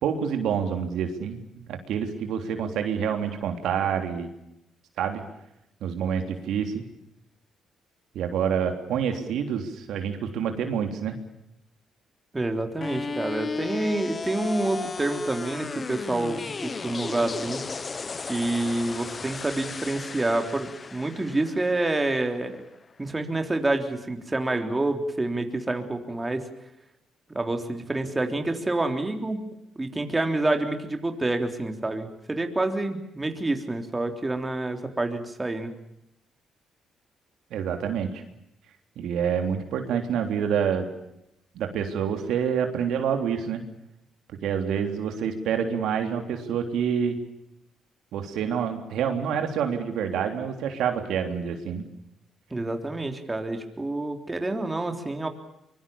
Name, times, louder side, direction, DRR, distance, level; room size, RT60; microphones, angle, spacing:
voice 1, 0.0-4.3 5.0-5.2 5.8-6.8 8.2-11.2 37.5-38.2 39.0-40.9 41.5-43.6 44.4-47.2 48.1-51.9, right 7 dB, 80° right, 5 dB, 3.5 m, -27 dB
voice 2, 12.3-17.6 18.3-22.6 23.0-26.4 27.3-29.4 29.8-35.7 52.5-55.3, right 2 dB, 20° right, 5 dB, 3.6 m, -28 dB
sound 1, 12.8-22.8, left 4 dB, 35° left, 1.2 m, -35 dB
24.5 x 23.5 x 7.2 m, 0.83 s
cardioid pair, 90°, 0 cm